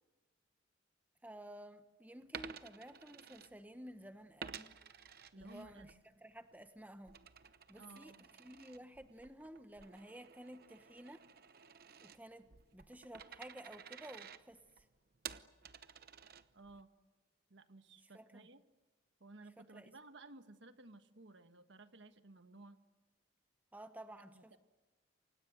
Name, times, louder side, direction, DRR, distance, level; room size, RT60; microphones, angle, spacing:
voice 1, 1.2-4.7 5.4-5.9 6.2-7.2 7.7-8.1 8.4-11.2 12.0-12.5 12.7-14.6 18.1-18.5 19.6-19.9 23.7-24.6, right 1 dB, 10° right, 9 dB, 1.0 m, -53 dB
Coin (dropping), 2.2-3.9 4.4-6.0 6.4-16.8, right 7 dB, 50° right, 0.9 m, -53 dB
voice 2, 5.3-6.0 7.8-8.3 16.5-16.9 17.5-18.6 19.2-22.8 24.3-24.6, right 2 dB, 65° right, 9 dB, 1.4 m, -57 dB
29.0 x 24.5 x 7.9 m, 1.2 s
head